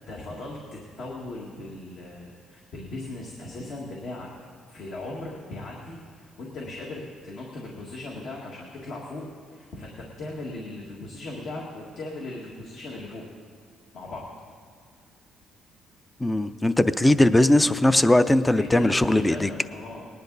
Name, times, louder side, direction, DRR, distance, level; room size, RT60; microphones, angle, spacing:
voice 1, 0.1-4.3 4.7-13.2 13.9-14.3 18.5-20.0, left 2 dB, 65° left, -3 dB, 1.8 m, -38 dB
voice 2, 16.2-19.5, left 1 dB, 10° left, 13 dB, 0.4 m, -19 dB
19.5 x 10.5 x 4.0 m, 2.1 s
cardioid pair, 110°, 0 cm